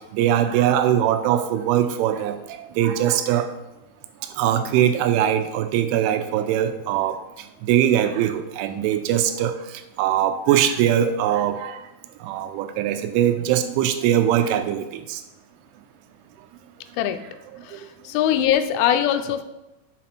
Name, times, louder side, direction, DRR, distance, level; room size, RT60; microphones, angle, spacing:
voice 1, 0.1-3.5 4.4-7.2 7.6-11.8 12.2-15.2 17.7-17.9 18.3-18.5, right 10 dB, 90° right, 9 dB, 3.1 m, -21 dB
voice 2, 17.6-19.4, left 10 dB, 90° left, 9 dB, 3.0 m, -22 dB
7.1 x 4.1 x 4.4 m, 0.94 s
omnidirectional pair, 5.4 m